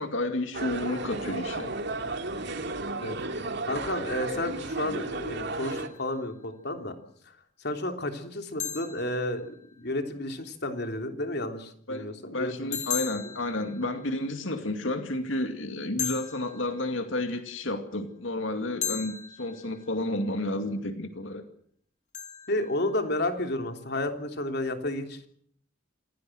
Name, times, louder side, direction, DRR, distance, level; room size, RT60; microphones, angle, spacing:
voice 1, 0.0-1.7 11.9-21.4, left 1 dB, 75° left, 6 dB, 2.4 m, -31 dB
sound 1, 0.5-5.9, right 2 dB, 60° right, 2.6 m, -33 dB
voice 2, 3.0-6.9 7.6-12.8 13.2-13.3 22.5-25.3, left 1 dB, 55° left, 6 dB, 3.3 m, -32 dB
sound 2, 5.6-6.4 8.6-10.0 12.7-14.5 16.0-17.4 18.8-20.2 22.1-23.4, left 8 dB, 40° left, 3.0 m, -38 dB
27.0 x 18.0 x 7.9 m, 0.63 s
head